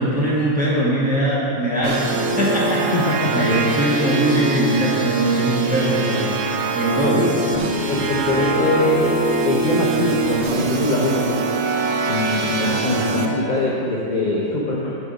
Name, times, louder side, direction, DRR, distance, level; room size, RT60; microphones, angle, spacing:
voice 1, 0.0-2.9 3.3-6.3 6.7-7.2, right 1 dB, 5° right, -8 dB, 1.2 m, -21 dB
sound 1, 1.8-13.3, right 3 dB, 65° right, 0.7 m, -23 dB
voice 2, 2.9-3.6 7.2-7.3 7.9-11.5 12.1-15.0, left 2 dB, 50° left, -4 dB, 0.6 m, -22 dB
6.9 x 4.7 x 5.0 m, 2.8 s
omnidirectional pair, 1.5 m